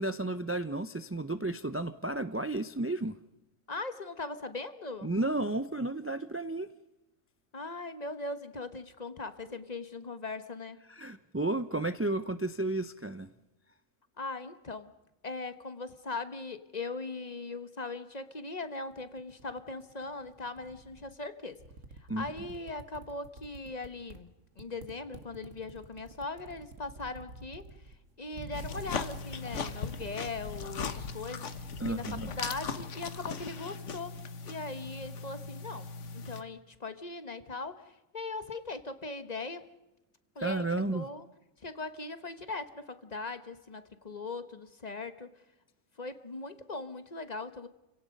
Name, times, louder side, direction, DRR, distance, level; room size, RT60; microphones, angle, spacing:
voice 1, 0.0-3.2 5.0-6.7 10.9-13.3 22.1-22.2 31.8-32.3 40.4-41.1, right 2 dB, 20° right, 0.3 m, -32 dB
voice 2, 3.7-5.1 7.5-10.8 14.2-14.9 15.2-21.6 22.0-24.3 24.6-34.1 34.4-39.6 40.3-41.3 41.6-45.4 46.0-47.7, left 3 dB, 35° left, 1.2 m, -40 dB
sound 1, 18.9-21.1 21.5-24.2 24.5-30.3, right 2 dB, 75° right, 2.1 m, -48 dB
sound 2, 28.5-36.4, left 5 dB, 70° left, 1.5 m, -39 dB
30.0 x 17.0 x 5.3 m
omnidirectional pair, 1.3 m